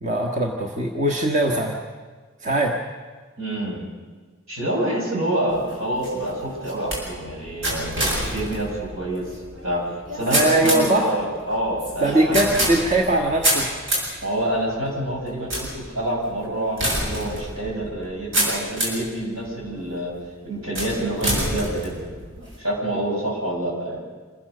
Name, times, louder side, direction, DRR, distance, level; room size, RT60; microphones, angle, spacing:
voice 1, 0.0-1.8 2.4-2.8 10.3-11.1 12.0-13.7, right 1 dB, 35° right, 1 dB, 1.4 m, -21 dB
voice 2, 3.4-3.8 4.5-9.8 10.1-12.7 14.2-20.1 20.4-22.0 22.6-24.0, right 1 dB, 80° right, -2 dB, 7.7 m, -27 dB
sound 1, 5.5-19.1 19.7-20.1 20.7-22.6, equal, 65° right, 7.1 m, -28 dB
27.0 x 15.5 x 6.7 m, 1.4 s
head